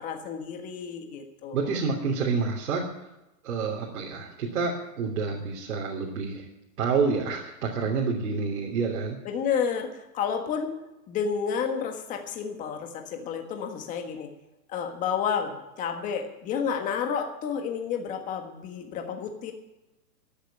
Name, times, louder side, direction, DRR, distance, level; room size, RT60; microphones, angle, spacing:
voice 1, 0.0-1.6 9.2-10.7 11.1-14.3 14.7-19.5, left 7 dB, 15° left, 4 dB, 1.5 m, -30 dB
voice 2, 1.5-3.1 3.4-6.5 6.8-9.2, right 4 dB, 60° right, -1 dB, 3.2 m, -28 dB
13.5 x 10.5 x 8.7 m, 0.97 s
hypercardioid pair, 155°, 49 cm